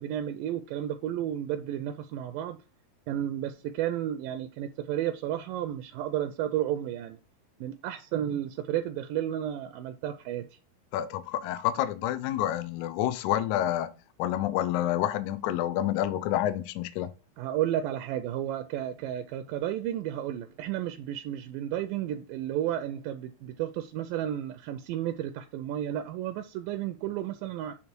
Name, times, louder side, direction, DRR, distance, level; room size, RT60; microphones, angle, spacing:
voice 1, 0.0-2.6 3.1-7.2 7.6-10.5 17.4-27.7, right 11 dB, 80° right, 2.1 m, -32 dB
voice 2, 10.9-17.1, left 12 dB, 75° left, 1.9 m, -29 dB
8.6 x 3.5 x 4.5 m
omnidirectional pair, 4.1 m